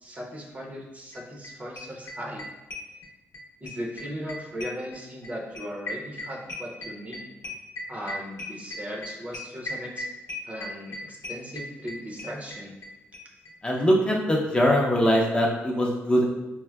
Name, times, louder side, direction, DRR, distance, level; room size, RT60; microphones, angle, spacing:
voice 1, 0.0-2.4 3.6-7.2 7.9-10.1 10.5-12.8, equal, 30° right, 0 dB, 0.6 m, -37 dB
sound 1, 1.1-1.2 1.4-1.5 1.8-3.4 3.7-12.9 13.1-13.2 13.5-13.6 13.8-13.9, left 2 dB, 70° left, 0.7 m, -37 dB
voice 2, 13.6-16.2, equal, 20° left, -2 dB, 0.6 m, -22 dB
4.4 x 2.0 x 2.2 m, 1.0 s
cardioid pair, 90°, 5 cm